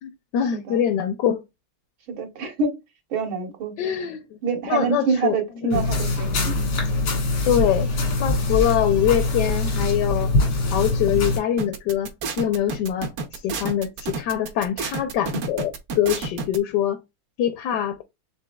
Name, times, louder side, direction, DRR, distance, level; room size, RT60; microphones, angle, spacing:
voice 1, 0.0-1.4 3.8-4.4 4.7-5.4 5.6-5.9 7.5-7.9 8.2-10.3 10.7-17.0 17.4-18.0, left 10 dB, 75° left, 1.0 m, -24 dB
voice 2, 0.5-0.8 2.1-2.8 3.1-3.8 4.4-6.7, right 5 dB, 75° right, 2.0 m, -26 dB
sound 1, 5.7-11.4, left 2 dB, 90° left, 2.4 m, -23 dB
sound 2, 11.6-16.6, right 4 dB, 60° right, 1.0 m, -30 dB
6.1 x 3.6 x 2.2 m
omnidirectional pair, 2.2 m